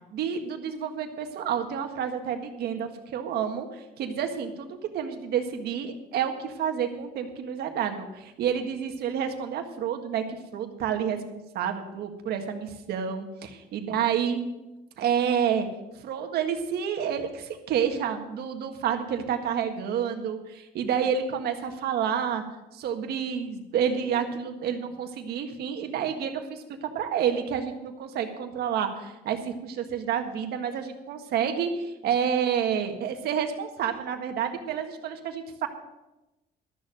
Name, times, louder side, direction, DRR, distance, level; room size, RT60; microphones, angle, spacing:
voice 1, 0.1-14.4 15.0-15.7 16.0-22.4 22.7-35.7, right 8 dB, 70° right, 5 dB, 1.7 m, -29 dB
13.0 x 6.9 x 7.5 m, 0.98 s
cardioid pair, 110°, 17 cm